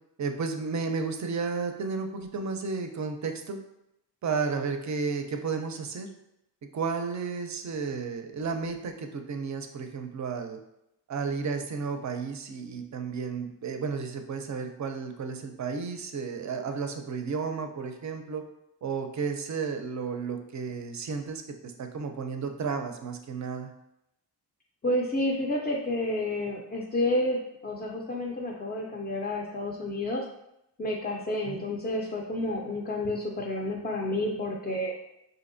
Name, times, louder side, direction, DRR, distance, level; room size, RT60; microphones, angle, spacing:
voice 1, 0.2-3.6 4.2-6.1 6.7-10.6 11.1-18.4 18.8-23.7 31.5-31.6, right 5 dB, 40° right, 6 dB, 0.4 m, -33 dB
voice 2, 24.8-30.2 30.8-34.9, left 1 dB, 25° left, -1 dB, 0.4 m, -30 dB
4.1 x 2.7 x 2.6 m, 0.83 s
wide cardioid pair, 120°, 44 cm